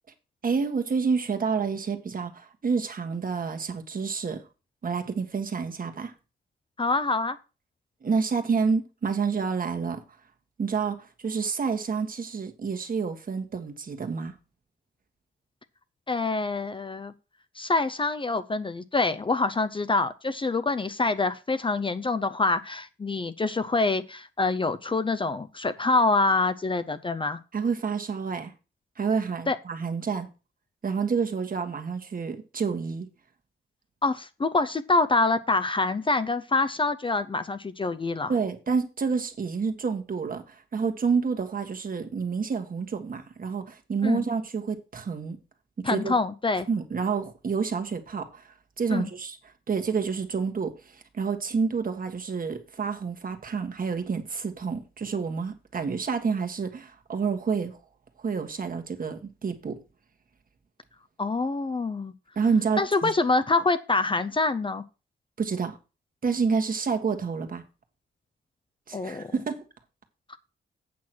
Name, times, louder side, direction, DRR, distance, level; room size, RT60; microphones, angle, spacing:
voice 1, 0.4-4.4 4.8-6.1 8.0-10.0 10.6-14.3 27.5-28.5 29.0-30.3 30.8-33.1 38.3-45.4 45.8-46.1 46.7-57.8 58.2-59.8 62.3-63.1 65.4-65.8 66.2-67.6 68.9-69.7, right 5 dB, 45° right, 1.6 m, -29 dB
voice 2, 6.8-7.4 16.1-17.1 17.6-27.4 29.5-29.6 34.0-38.3 44.0-44.2 45.8-46.7 48.9-49.1 61.2-62.1 62.8-64.8 68.9-69.3 70.3-70.4, left 3 dB, 25° left, 0.6 m, -26 dB
8.5 x 6.0 x 6.1 m
wide cardioid pair, 115°, 20 cm